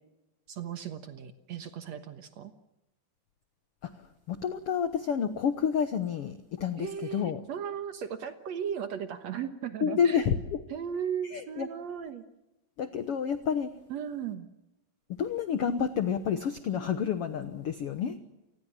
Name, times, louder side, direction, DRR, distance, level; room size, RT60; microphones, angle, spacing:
voice 1, 0.5-2.5 6.8-10.3 10.7-12.2 13.9-14.5, right 8 dB, 60° right, 9 dB, 1.9 m, -36 dB
voice 2, 4.3-7.4 9.8-10.6 11.3-11.7 12.8-13.7 15.2-18.1, left 7 dB, 90° left, 10 dB, 1.2 m, -29 dB
28.5 x 20.0 x 7.4 m, 0.96 s
omnidirectional pair, 4.3 m